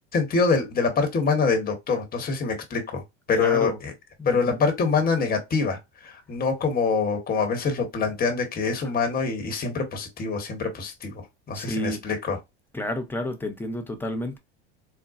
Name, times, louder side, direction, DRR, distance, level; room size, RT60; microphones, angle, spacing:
voice 1, 0.1-3.0 3.3-3.9 4.3-5.8 6.0-12.4, left 4 dB, 25° left, 1.1 m, -25 dB
voice 2, 3.4-3.8 4.2-4.6 11.5-12.0 12.7-14.4, left 1 dB, 5° left, 0.7 m, -31 dB
3.8 x 2.1 x 2.4 m
supercardioid pair, 100°, 32 cm